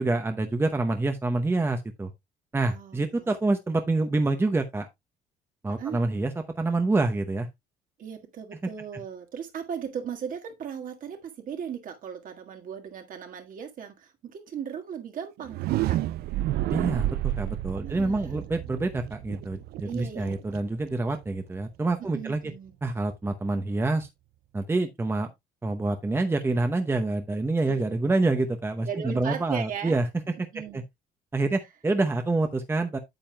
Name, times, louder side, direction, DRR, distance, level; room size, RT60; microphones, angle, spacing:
voice 1, 0.0-2.1 2.5-4.9 5.6-7.5 16.7-22.4 22.8-24.1 24.5-25.3 25.6-30.1 30.5-30.8 31.3-33.0, right 2 dB, 15° right, 0.8 m, -27 dB
voice 2, 2.7-3.3 5.8-6.0 8.0-16.0 17.8-18.5 19.8-20.4 22.0-22.7 27.7-27.8 28.8-30.0 30.5-30.8, right 7 dB, 55° right, 1.7 m, -37 dB
sound 1, 15.4-21.3, right 15 dB, 70° right, 0.4 m, -30 dB
8.9 x 7.4 x 2.3 m
cardioid pair, 110°, 17 cm